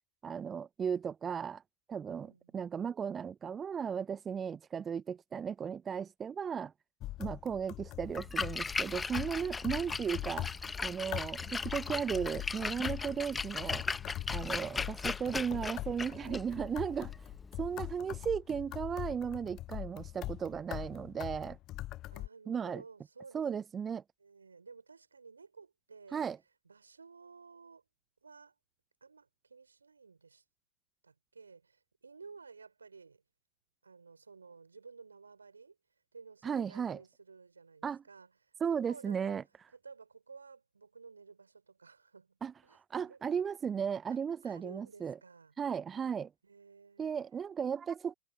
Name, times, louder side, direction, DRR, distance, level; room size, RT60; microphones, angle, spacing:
voice 1, 0.2-1.6 1.9-6.7 7.2-10.5 10.8-13.9 14.3-17.1 17.6-21.6 22.5-22.8 23.3-24.0 26.1-26.4 36.4-37.0 37.8-38.0 38.6-39.4 42.4-45.2 45.6-46.3 47.0-48.1, right 7 dB, 20° right, 0.6 m, -35 dB
voice 2, 2.1-2.6 16.0-16.4 22.1-23.6 24.2-26.3 26.6-27.8 28.2-28.5 29.0-30.4 31.0-33.2 33.8-35.8 36.1-39.4 39.7-43.4 44.4-45.5 46.4-47.2, right 5 dB, 75° right, 5.5 m, -54 dB
sound 1, 7.0-22.3, left 15 dB, 35° left, 0.6 m, -42 dB
Splash splatter, 8.0-18.0, left 4 dB, 15° left, 1.2 m, -38 dB
figure-of-eight pair, 90°, 0 cm